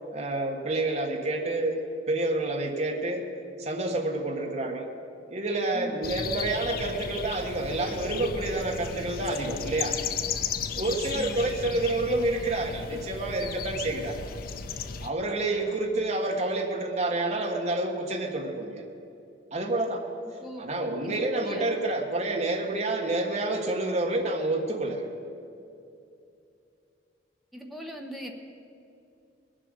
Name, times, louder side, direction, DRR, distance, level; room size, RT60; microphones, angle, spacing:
voice 1, 0.1-3.2 3.6-4.9 5.3-10.0 10.7-14.2 15.0-18.9 19.5-20.0 20.6-25.1, right 2 dB, 40° right, 1 dB, 1.4 m, -28 dB
voice 2, 5.7-6.1 10.9-11.8 15.5-15.7 20.2-20.7 21.0-21.6 27.5-28.3, equal, ahead, 1 dB, 1.1 m, -41 dB
sound 1, 6.0-15.1, left 6 dB, 50° left, 0.5 m, -35 dB
21.0 x 7.7 x 6.6 m, 2.6 s
head